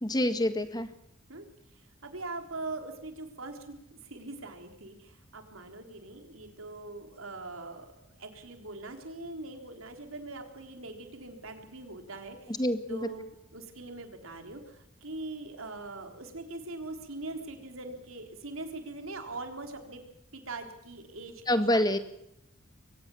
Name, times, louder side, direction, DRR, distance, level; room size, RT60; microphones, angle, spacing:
voice 1, 0.0-0.9 12.6-13.1 21.5-22.0, left 1 dB, 20° left, 10 dB, 1.6 m, -26 dB
voice 2, 1.7-12.6 12.9-13.3 13.5-20.0 20.3-22.0, right 2 dB, 80° right, 5 dB, 3.9 m, -42 dB
23.5 x 18.5 x 7.1 m, 0.82 s
head